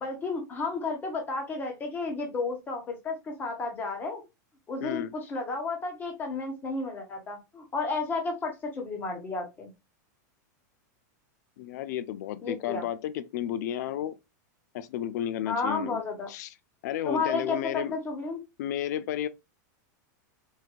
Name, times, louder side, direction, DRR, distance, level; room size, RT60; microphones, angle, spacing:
voice 1, 0.0-4.2 4.7-9.7 12.4-12.8 15.5-16.3 17.0-18.4, left 3 dB, 20° left, 1.3 m, -32 dB
voice 2, 4.8-5.1 11.6-14.2 14.7-16.0 16.3-16.5 16.8-17.9 18.6-19.3, left 11 dB, 65° left, 0.4 m, -32 dB
4.7 x 2.8 x 2.4 m
supercardioid pair, 150°, 10 cm